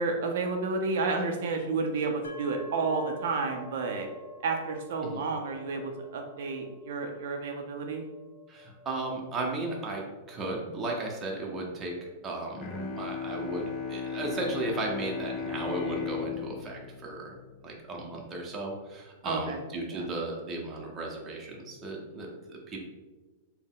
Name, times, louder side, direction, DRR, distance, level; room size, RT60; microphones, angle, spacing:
voice 1, 0.0-4.1 4.4-8.0 19.2-19.6 19.9-20.1, right 4 dB, 70° right, 3 dB, 0.5 m, -31 dB
sound 1, 2.2-15.9, left 2 dB, 90° left, 0.6 m, -51 dB
voice 2, 8.5-11.9 12.2-12.7 13.0-17.3 17.6-22.8, right 2 dB, 20° right, 0 dB, 0.7 m, -35 dB
Bowed string instrument, 12.6-18.2, left 6 dB, 30° left, 0.5 m, -36 dB
4.1 x 2.1 x 3.7 m, 1.2 s
supercardioid pair, 150°, 0 cm